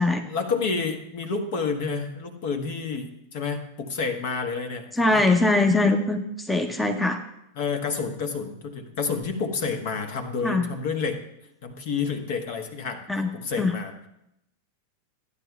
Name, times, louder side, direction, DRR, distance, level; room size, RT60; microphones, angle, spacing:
voice 1, 0.3-5.2 7.5-11.2 11.6-13.9, left 5 dB, 50° left, 5 dB, 1.3 m, -29 dB
voice 2, 4.9-7.2 10.4-10.7 13.1-13.3 13.6-13.7, left 2 dB, 5° left, 4 dB, 0.8 m, -22 dB
14.5 x 9.8 x 2.3 m, 0.82 s
figure-of-eight pair, 90°, 0 cm